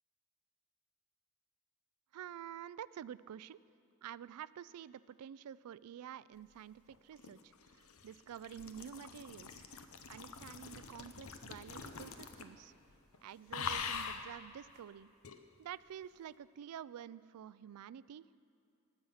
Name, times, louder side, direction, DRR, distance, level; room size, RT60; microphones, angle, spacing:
voice 1, 2.1-3.6 4.0-9.7 10.1-12.7 13.2-15.1 15.6-18.3, right 9 dB, 85° right, 18 dB, 0.3 m, -49 dB
sound 1, 6.9-12.6 12.9-13.2 13.5-14.3 15.2-15.4, left 6 dB, 70° left, 0.8 m, -44 dB
sound 2, 8.3-16.0 16.4-16.5, left 1 dB, ahead, 3.0 m, -68 dB
19.0 x 7.9 x 5.6 m, 2.6 s
head